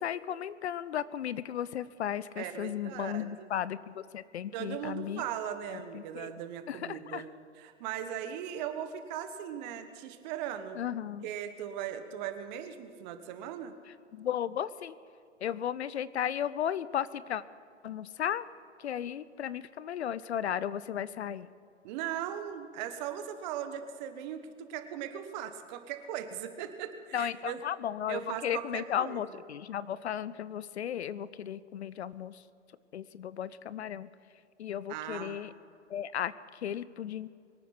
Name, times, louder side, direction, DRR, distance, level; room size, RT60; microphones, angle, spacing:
voice 1, 0.0-5.2 5.7-6.3 6.7-7.2 10.8-11.3 14.1-15.0 15.4-17.4 17.8-18.5 18.8-21.5 27.1-32.4 32.9-34.1 34.6-35.5 35.9-37.3, left 9 dB, 65° left, 17 dB, 0.7 m, -35 dB
voice 2, 2.4-3.5 4.5-7.3 7.6-10.8 11.2-13.7 21.8-27.6 28.1-29.2 34.9-35.4, right 10 dB, 40° right, 9 dB, 1.4 m, -38 dB
23.5 x 9.1 x 5.9 m, 2.4 s
figure-of-eight pair, 115°, 36 cm